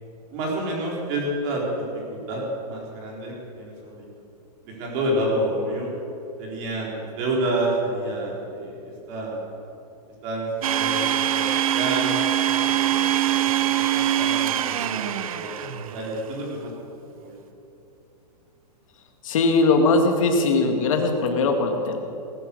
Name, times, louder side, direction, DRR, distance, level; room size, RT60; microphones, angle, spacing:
voice 1, 0.3-1.8 2.1-4.1 4.6-5.9 6.4-9.4 10.2-12.2 12.6-16.7 17.2-17.4, right 1 dB, 30° right, -2 dB, 3.7 m, -29 dB
Domestic sounds home sounds, 10.6-16.1, right 11 dB, 55° right, 0.8 m, -23 dB
voice 2, 19.2-22.0, left 3 dB, 50° left, 3 dB, 2.2 m, -20 dB
19.0 x 10.0 x 6.9 m, 2.7 s
hypercardioid pair, 170°, 21 cm